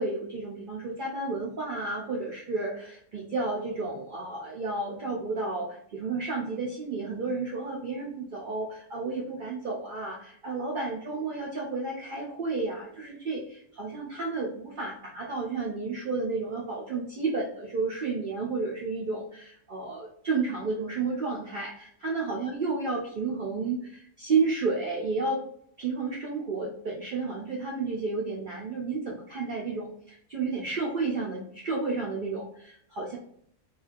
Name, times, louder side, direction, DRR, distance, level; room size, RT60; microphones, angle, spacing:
voice 1, 0.0-25.4 25.8-33.2, right 3 dB, 80° right, -2 dB, 0.4 m, -31 dB
3.0 x 2.4 x 2.4 m, 0.67 s
omnidirectional pair, 1.5 m